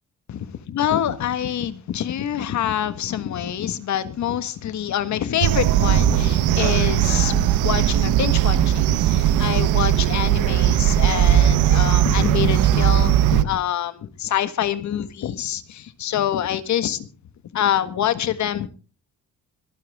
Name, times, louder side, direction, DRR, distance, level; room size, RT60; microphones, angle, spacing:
voice 1, 0.3-17.1 17.5-18.7, left 10 dB, 70° left, 1.6 m, -26 dB
sound 1, 5.4-13.4, right 12 dB, 90° right, 1.0 m, -18 dB
24.5 x 9.4 x 3.6 m
cardioid pair, 90°, 30 cm